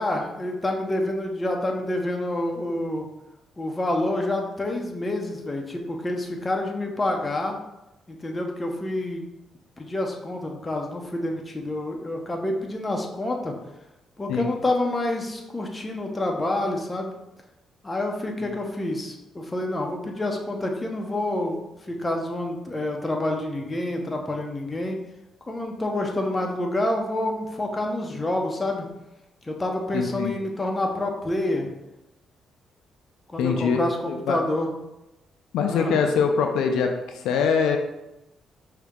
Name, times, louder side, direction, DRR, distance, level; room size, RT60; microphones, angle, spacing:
voice 1, 0.0-3.1 3.6-7.6 8.1-9.3 9.8-13.5 14.2-17.1 17.8-25.0 25.5-28.9 29.4-31.7 33.3-34.7 35.7-36.0, left 1 dB, 20° left, 1 dB, 0.8 m, -28 dB
voice 2, 29.9-30.3 33.4-34.4 35.5-36.9 37.2-37.8, left 6 dB, 85° left, 4 dB, 0.5 m, -23 dB
5.1 x 2.9 x 3.6 m, 0.93 s
cardioid pair, 90°, 0 cm